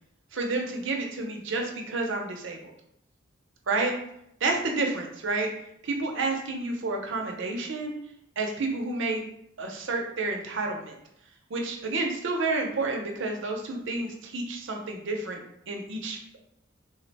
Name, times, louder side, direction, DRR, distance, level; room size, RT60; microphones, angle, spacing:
voice 1, 0.3-2.6 3.7-4.0 4.4-5.5 5.8-7.9 8.4-9.2 9.6-10.9 11.5-15.4 15.7-16.4, right 3 dB, 65° right, 2 dB, 0.7 m, -30 dB
3.8 x 2.2 x 4.0 m, 0.76 s
head